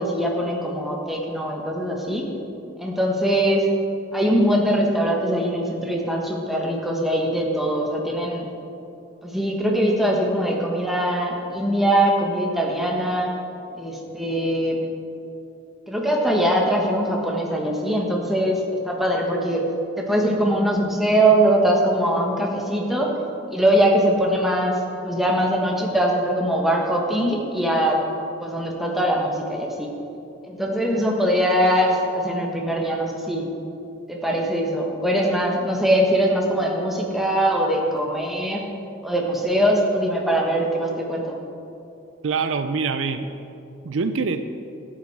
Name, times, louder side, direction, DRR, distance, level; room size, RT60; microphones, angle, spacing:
voice 1, 0.0-2.3 2.8-3.7 4.1-8.5 9.2-13.3 13.7-14.8 15.9-18.6 18.8-19.6 20.0-23.1 23.5-24.8 25.0-28.0 28.4-29.9 30.5-33.5 34.1-38.6 39.0-41.2, right 1 dB, ahead, -1 dB, 1.2 m, -22 dB
voice 2, 42.2-43.3 43.8-44.4, right 4 dB, 65° right, 9 dB, 0.4 m, -24 dB
12.5 x 8.7 x 4.7 m, 2.8 s
head